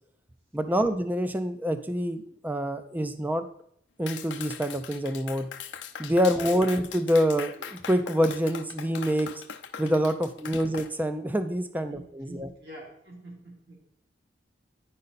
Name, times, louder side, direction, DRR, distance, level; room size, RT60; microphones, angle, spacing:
voice 1, 0.5-3.4 4.0-5.5 6.0-9.3 9.8-12.5, equal, 10° right, 9 dB, 0.4 m, -26 dB
Clapping, 4.1-10.9, left 7 dB, 80° left, 0.6 m, -40 dB
voice 2, 6.2-6.7 10.2-10.7 11.7-13.8, right 1 dB, 60° right, -2 dB, 2.6 m, -47 dB
9.6 x 5.3 x 4.1 m, 0.68 s
head